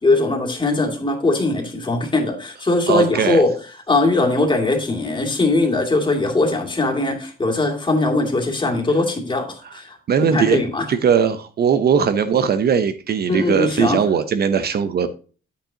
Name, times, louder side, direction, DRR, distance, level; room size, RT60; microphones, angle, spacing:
voice 1, 0.0-3.5 3.9-10.8 13.3-14.0, left 2 dB, 25° left, 2.3 m, -20 dB
voice 2, 2.9-3.4 10.1-10.6 10.9-15.1, right 7 dB, 55° right, 0.7 m, -19 dB
8.9 x 8.3 x 2.8 m
cardioid pair, 90°, 20 cm